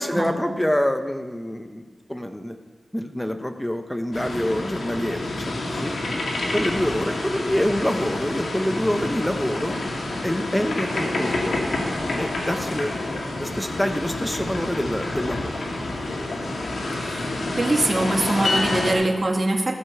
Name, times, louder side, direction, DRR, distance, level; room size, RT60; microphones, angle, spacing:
voice 1, 0.0-2.5 2.9-6.0 6.5-9.8 10.2-11.6 12.1-13.0 13.4-15.5, equal, 10° left, 6 dB, 1.0 m, -26 dB
sound 1, 4.1-18.9, left 2 dB, 85° left, 2.1 m, -28 dB
voice 2, 17.6-19.8, right 2 dB, 40° right, 1 dB, 1.7 m, -23 dB
14.0 x 5.3 x 7.0 m, 1.4 s
cardioid pair, 50°, 0 cm